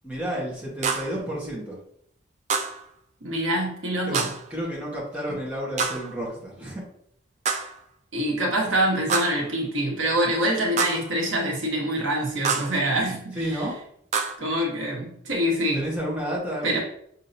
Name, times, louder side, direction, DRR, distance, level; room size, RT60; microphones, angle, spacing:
voice 1, 0.0-1.8 4.1-4.2 4.5-6.8 13.3-13.7 15.7-16.8, equal, 5° right, -6 dB, 1.2 m, -31 dB
sound 1, 0.8-1.2 2.5-2.8 4.1-4.5 5.8-6.2 7.4-7.8 9.1-9.5 10.8-11.1 12.4-12.8 14.1-14.4, right 5 dB, 35° right, 0.3 m, -27 dB
voice 2, 3.2-4.3 5.3-5.4 8.1-13.6 14.4-15.8 16.6-16.8, right 1 dB, 75° right, -1 dB, 1.2 m, -25 dB
6.0 x 2.7 x 2.6 m, 0.69 s
head